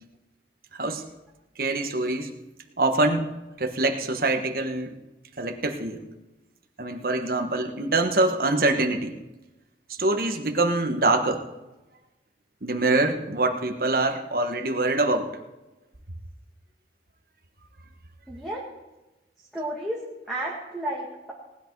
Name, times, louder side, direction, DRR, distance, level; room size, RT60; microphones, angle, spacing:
voice 1, 1.6-2.3 2.8-3.3 3.6-5.0 5.4-6.0 6.8-9.2 10.0-11.4 12.6-15.3, right 2 dB, 55° right, 5 dB, 1.3 m, -24 dB
voice 2, 18.3-18.6 19.5-21.3, right 1 dB, ahead, -4 dB, 1.9 m, -32 dB
18.5 x 10.5 x 4.7 m, 1.0 s
head